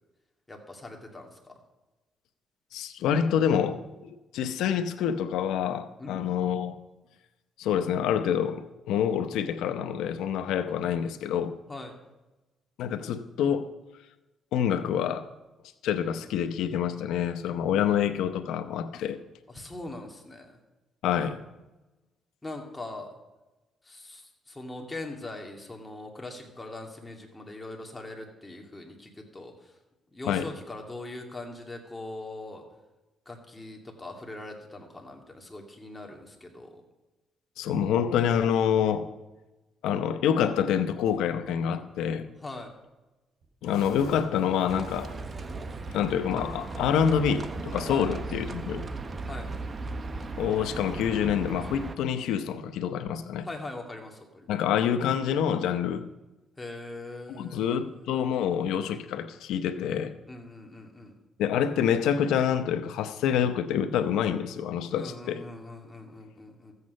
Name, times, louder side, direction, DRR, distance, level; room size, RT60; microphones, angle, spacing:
voice 1, 0.5-1.5 6.0-6.2 11.7-11.9 19.5-20.6 22.4-23.1 23.8-29.7 30.1-32.6 33.3-36.8 42.4-42.7 47.9-48.1 49.3-49.5 53.4-54.5 56.6-58.2 60.3-61.1 64.9-66.7, left 2 dB, 15° left, 2 dB, 2.3 m, -41 dB
voice 2, 2.7-6.7 7.6-11.5 12.8-13.7 14.5-15.3 15.8-19.2 21.0-21.4 30.3-30.5 37.6-39.1 39.8-42.3 43.6-45.1 45.9-48.9 50.4-53.5 54.5-56.0 57.3-60.1 61.4-65.4, left 8 dB, 90° left, 10 dB, 0.8 m, -27 dB
Tearing, 41.0-41.4 42.3-42.4 42.7-42.8 43.4-45.4, right 2 dB, 80° right, 4.0 m, -46 dB
Livestock farm animals working animals, 44.7-52.0, right 3 dB, 35° right, 0.9 m, -36 dB
14.0 x 8.3 x 5.4 m, 1.1 s
cardioid pair, 90°, 0 cm